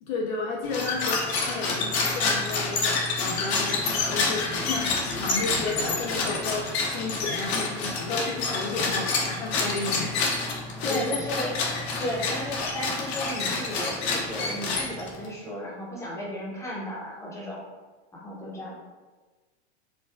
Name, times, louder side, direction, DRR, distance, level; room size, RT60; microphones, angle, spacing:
voice 1, 0.0-10.1 10.8-11.0, left 3 dB, 45° left, -2 dB, 0.5 m, -32 dB
sound 1, 0.6-15.3, left 3 dB, 65° left, 0.9 m, -28 dB
voice 2, 10.8-11.6 12.0-17.6 18.1-18.8, equal, 10° left, -5 dB, 0.7 m, -34 dB
4.4 x 2.2 x 2.4 m, 1.3 s
hypercardioid pair, 130°, 34 cm